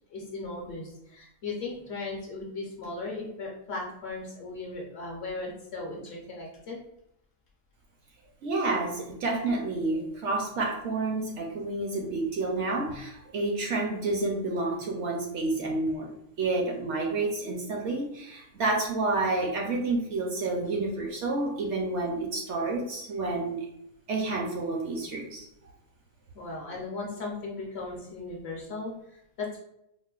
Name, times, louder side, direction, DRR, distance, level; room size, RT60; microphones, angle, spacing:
voice 1, 0.1-6.8 26.3-29.6, left 3 dB, 60° left, -1 dB, 0.8 m, -37 dB
voice 2, 8.4-16.1 16.4-23.6 24.1-25.5, right 2 dB, 65° right, 0 dB, 0.8 m, -29 dB
4.3 x 2.0 x 2.3 m, 0.79 s
omnidirectional pair, 1.4 m